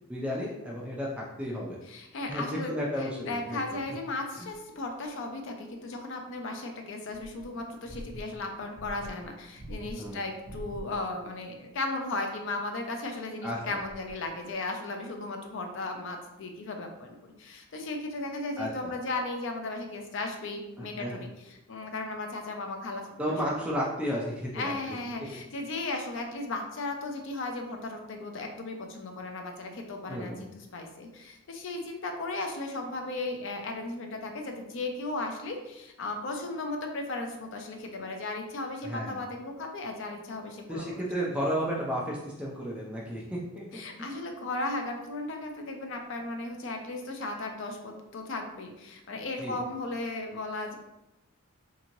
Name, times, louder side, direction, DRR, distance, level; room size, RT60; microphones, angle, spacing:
voice 1, 0.1-1.1 1.4-1.8 2.3-3.6 4.4-4.5 10.0-10.2 13.4-13.8 18.6-18.9 21.0-21.2 23.2-24.7 30.1-30.4 38.8-39.2 40.7-43.7 44.0-44.2 49.4-49.6, equal, 5° right, -4 dB, 0.4 m, -33 dB
voice 2, 1.9-23.4 24.5-41.0 43.7-50.8, left 2 dB, 55° left, 3 dB, 0.4 m, -36 dB
sound 1, 4.5-4.6 7.1-11.3 13.8-14.5, equal, 60° right, 0.5 m, -45 dB
2.9 x 2.7 x 2.6 m, 0.93 s
head